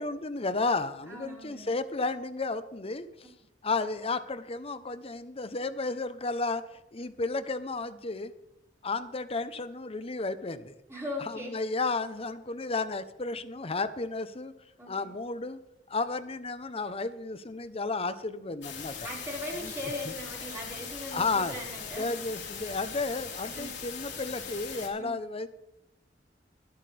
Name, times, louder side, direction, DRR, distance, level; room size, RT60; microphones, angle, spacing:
voice 1, 0.0-3.3 3.6-8.3 8.8-10.7 11.2-14.5 14.9-15.6 15.9-19.1 19.5-19.7 21.1-21.5 22.0-25.5, left 3 dB, 35° left, 12 dB, 0.9 m, -33 dB
voice 2, 1.1-1.7 10.9-11.6 14.8-15.1 19.0-22.1 23.5-23.7 25.0-25.2, left 1 dB, 15° right, -5 dB, 5.1 m, -39 dB
sound 1, 18.6-24.9, left 6 dB, 70° left, 3.3 m, -40 dB
24.5 x 8.3 x 3.4 m, 0.89 s
head